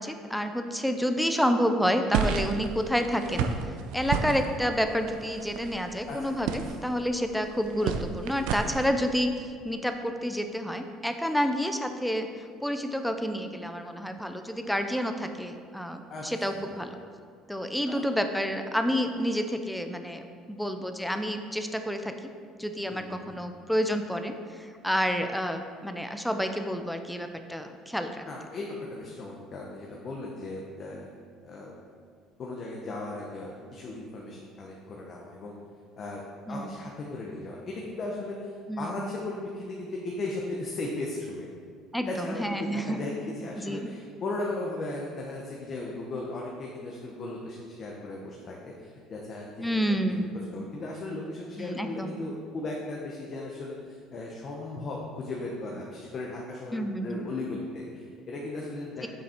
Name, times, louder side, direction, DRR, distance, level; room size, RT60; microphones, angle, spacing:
voice 1, 0.0-3.5 3.9-9.3 9.6-12.3 12.6-17.0 17.5-22.1 22.6-24.4 24.8-28.2 36.5-36.6 38.7-38.9 41.9-43.0 43.6-43.9 49.6-50.3 51.6-52.2 56.7-57.2, equal, ahead, 7 dB, 0.5 m, -29 dB
sound 1, 2.1-8.9, right 6 dB, 80° right, 0.5 m, -32 dB
voice 2, 6.1-6.7 16.1-16.2 16.5-16.8 17.8-18.0 22.9-23.5 28.2-31.1 31.4-31.7 32.4-35.5 36.0-41.5 42.0-50.0 50.5-59.1, left 2 dB, 35° left, -2 dB, 0.9 m, -37 dB
7.2 x 5.9 x 4.3 m, 2.2 s
cardioid pair, 145°, 0 cm